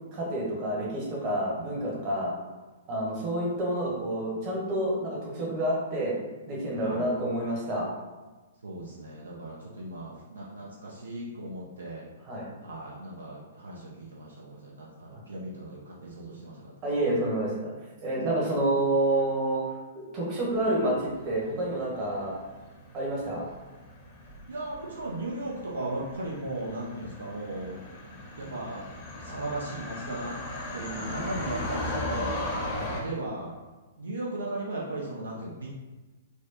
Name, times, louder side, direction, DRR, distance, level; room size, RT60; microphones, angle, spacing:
voice 1, 0.1-2.3 2.9-6.2 6.5-7.9 12.3-12.5 15.1-15.2 16.8-17.7 18.0-19.6 19.9-22.3 22.9-23.4 32.8-32.9, right 1 dB, 35° right, -3 dB, 1.1 m, -28 dB
voice 2, 8.6-12.0 12.6-16.7 24.5-27.8 28.4-28.9 29.2-30.3 30.7-32.3 32.9-33.6 34.0-35.7, right 2 dB, 75° right, -4 dB, 0.6 m, -37 dB
sound 1, 20.6-33.0, left 1 dB, 35° left, 0.8 m, -38 dB
4.3 x 2.2 x 2.9 m, 1.2 s
figure-of-eight pair, 115°, 0 cm